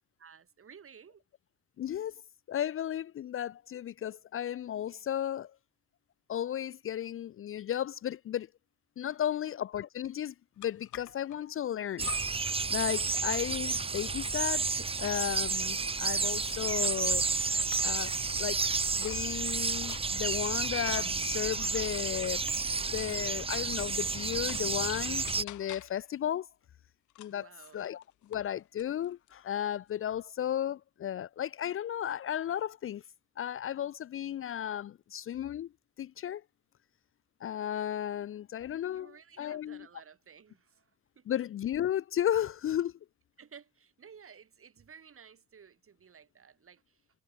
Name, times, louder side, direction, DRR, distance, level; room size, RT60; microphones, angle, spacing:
voice 1, 0.2-1.2 9.1-9.4 27.3-27.8 38.9-41.3 43.4-47.1, right 7 dB, 45° right, 5.3 m, -55 dB
voice 2, 1.8-2.1 2.5-5.5 6.3-8.5 9.0-12.1 12.7-14.6 15.0-17.2 17.8-22.4 22.9-26.5 27.2-27.5 27.7-33.0 33.4-35.7 36.0-36.4 37.4-39.9 41.3-42.9, left 10 dB, 45° left, 0.5 m, -34 dB
sound 1, 10.6-11.4 12.0-12.6 12.9-17.1 17.5-23.1 23.5-24.8 25.3-26.1 27.1-28.5 28.8-29.4, left 16 dB, 80° left, 0.8 m, -50 dB
sound 2, 12.0-25.4, right 4 dB, 20° right, 0.7 m, -31 dB
cardioid pair, 90°, 30 cm